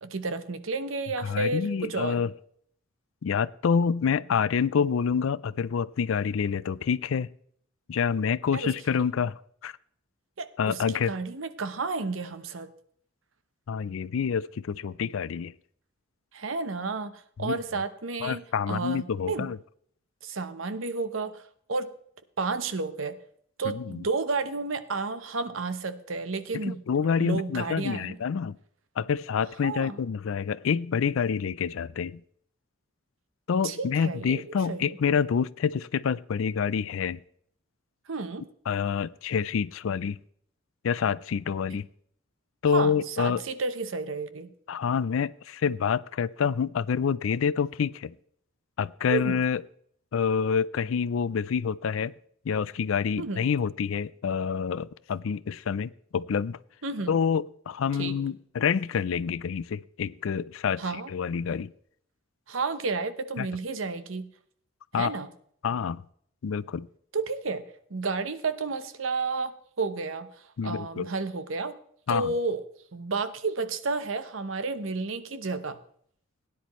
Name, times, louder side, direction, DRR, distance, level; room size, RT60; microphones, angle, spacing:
voice 1, 0.0-2.2 8.5-8.7 9.0-9.1 10.4-12.7 16.3-17.1 17.4-19.5 20.2-21.4 21.7-21.9 22.4-23.2 23.6-26.8 27.2-28.2 29.6-30.0 33.6-34.4 34.7-35.0 38.1-38.5 41.7-41.8 42.7-44.5 49.1-49.4 53.2-53.4 56.8-57.2 57.9-58.1 60.8-61.1 62.5-64.3 65.0-65.3 67.1-70.3 70.6-71.8 72.1-72.6 72.9-75.8, right 4 dB, 70° right, 12 dB, 0.9 m, -31 dB
voice 2, 1.2-2.3 3.2-7.3 7.9-9.3 9.6-9.7 10.6-11.1 13.7-15.5 17.4-17.6 18.2-19.6 23.6-24.0 26.5-28.6 29.0-32.2 33.5-37.2 38.7-40.2 40.8-41.9 42.6-43.4 44.7-48.1 48.8-49.6 50.1-52.1 52.5-56.6 57.1-61.7 63.4-63.5 64.9-65.2 65.6-66.0 66.4-66.9 70.6-71.1 72.1-72.3, left 6 dB, 75° left, 19 dB, 0.4 m, -27 dB
17.0 x 10.0 x 3.1 m, 0.64 s
head